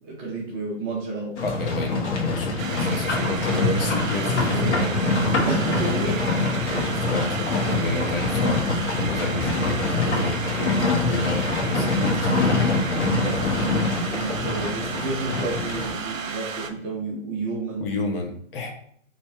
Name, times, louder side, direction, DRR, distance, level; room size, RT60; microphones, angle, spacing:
voice 1, 0.0-1.4 5.4-6.9 13.2-17.9, right 3 dB, 15° right, -4 dB, 0.5 m, -31 dB
Livestock farm animals working animals, 1.4-15.9, left 2 dB, 60° left, 1.1 m, -24 dB
voice 2, 1.4-4.9 6.9-12.9 17.8-18.7, left 3 dB, 45° left, 3 dB, 0.7 m, -31 dB
sound 1, 2.6-16.7, right 5 dB, 85° right, 0.6 m, -33 dB
Bass guitar, 4.5-8.3, right 3 dB, 50° right, 0.8 m, -42 dB
3.1 x 2.6 x 3.3 m, 0.64 s
hypercardioid pair, 135°, 39 cm